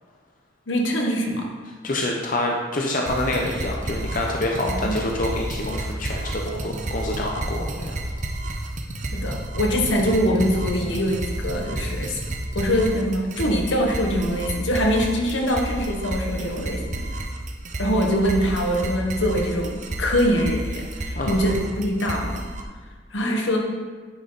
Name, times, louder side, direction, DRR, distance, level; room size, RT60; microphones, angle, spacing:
voice 1, 0.7-1.5 4.7-5.0 9.1-12.2 12.5-17.1 17.8-22.5 23.1-23.6, equal, 80° left, 1 dB, 1.2 m, -23 dB
voice 2, 1.8-8.0 21.2-21.4, left 1 dB, 45° left, 0 dB, 0.7 m, -27 dB
sound 1, 3.1-22.6, right 1 dB, 40° right, 0.7 m, -31 dB
9.7 x 5.5 x 4.0 m, 1.5 s
head